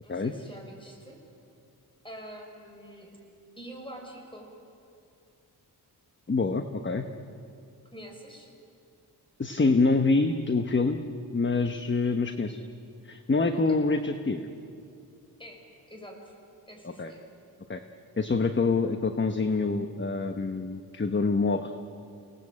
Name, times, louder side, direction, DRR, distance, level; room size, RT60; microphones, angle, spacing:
voice 1, 0.0-1.2 2.0-3.1 3.6-4.5 7.9-8.5 13.5-13.8 15.4-15.6 15.9-16.3 16.7-17.3, equal, 15° left, 1 dB, 5.9 m, -45 dB
voice 2, 6.3-7.1 9.4-11.0 11.3-12.6 13.0-14.5 16.8-17.1 17.7-17.8 18.2-21.7, left 3 dB, 30° left, 7 dB, 1.1 m, -26 dB
29.0 x 18.5 x 8.6 m, 2.6 s
wide cardioid pair, 90°, 38 cm